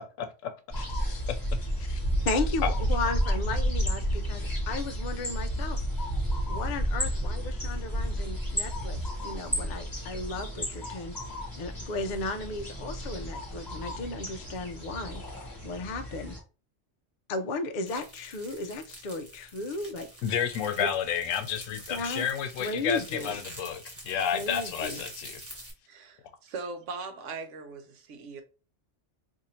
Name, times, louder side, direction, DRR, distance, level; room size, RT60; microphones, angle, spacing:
voice 1, 0.2-0.5 0.8-1.2 1.8-2.0 2.6-2.7 20.2-25.4, left 8 dB, 85° left, 1.0 m, -31 dB
sound 1, 0.7-16.4, equal, 20° left, 1.1 m, -31 dB
voice 2, 2.2-5.8 6.5-11.2 11.6-15.2 15.6-16.4 17.3-20.1 20.8-20.9 21.9-22.3 22.6-23.4 24.3-25.0, left 3 dB, 55° left, 0.5 m, -35 dB
sound 2, 17.9-25.7, right 1 dB, 15° right, 0.9 m, -46 dB
voice 3, 25.9-28.4, right 4 dB, 75° right, 1.1 m, -40 dB
2.7 x 2.6 x 4.2 m
omnidirectional pair, 1.3 m